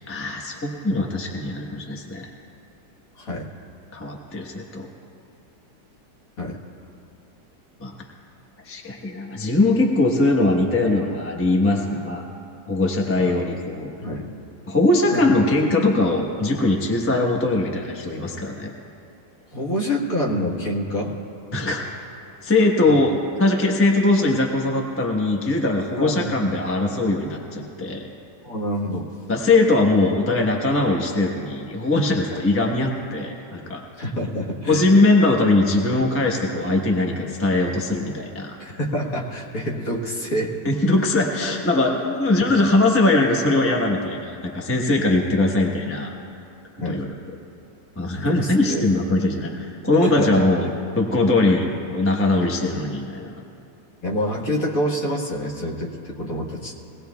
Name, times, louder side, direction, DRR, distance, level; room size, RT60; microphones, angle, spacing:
voice 1, 0.1-2.3 3.9-4.9 7.8-7.9 8.6-12.3 12.7-13.9 14.7-18.7 21.5-21.9 22.4-28.1 29.3-33.8 34.7-38.5 40.6-46.1 46.8-47.1 47.9-50.7 51.0-53.3, left 2 dB, 10° left, 0 dB, 0.8 m, -21 dB
voice 2, 3.2-3.5 6.4-6.6 13.1-13.4 14.0-14.3 15.1-15.2 19.5-21.1 22.9-23.0 26.0-26.5 28.4-29.1 32.3-32.5 34.0-34.9 38.6-40.5 46.8-47.0 48.1-48.8 50.0-50.5 52.4-52.5 54.0-56.8, equal, 50° left, -2 dB, 1.8 m, -27 dB
22.5 x 18.0 x 2.3 m, 2.7 s
omnidirectional pair, 1.9 m